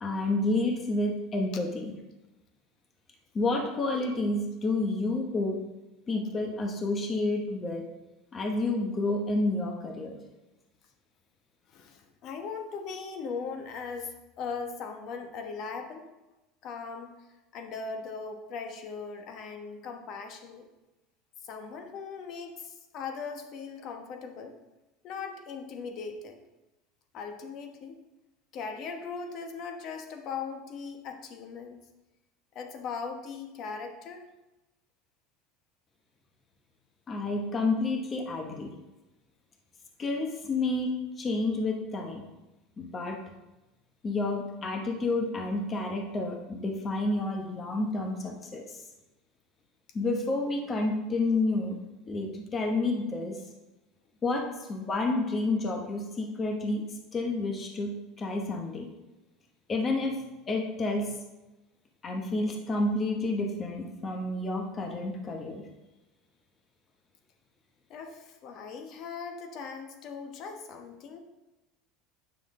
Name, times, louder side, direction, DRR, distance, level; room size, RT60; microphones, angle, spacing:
voice 1, 0.0-1.9 3.3-5.6 6.1-7.8 8.3-10.2 37.1-38.7 40.0-40.9 41.2-42.2 42.8-43.2 44.0-48.8 49.9-51.8 52.1-53.4 54.2-56.8 57.1-58.9 59.7-60.2 60.5-61.1 62.0-65.6, left 2 dB, 25° left, 2 dB, 1.0 m, -30 dB
voice 2, 11.7-16.1 16.6-17.1 17.5-20.7 21.4-24.5 25.0-26.4 27.1-28.0 28.5-31.8 32.5-34.3 67.9-71.2, left 5 dB, 45° left, 5 dB, 1.1 m, -39 dB
9.2 x 6.0 x 3.7 m, 1.0 s
supercardioid pair, 140°, 0 cm